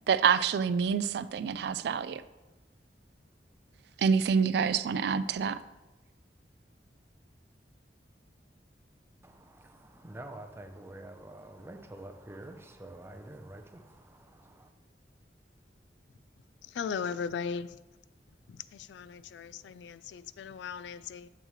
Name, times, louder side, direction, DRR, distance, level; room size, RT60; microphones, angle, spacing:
voice 1, 0.1-2.2 4.0-5.6, right 6 dB, 65° right, 14 dB, 0.3 m, -27 dB
voice 2, 9.2-14.7, right 1 dB, 15° right, 5 dB, 0.6 m, -47 dB
voice 3, 16.6-17.8 18.5-21.3, left 6 dB, 80° left, 15 dB, 0.3 m, -38 dB
7.2 x 6.8 x 3.1 m, 1.1 s
head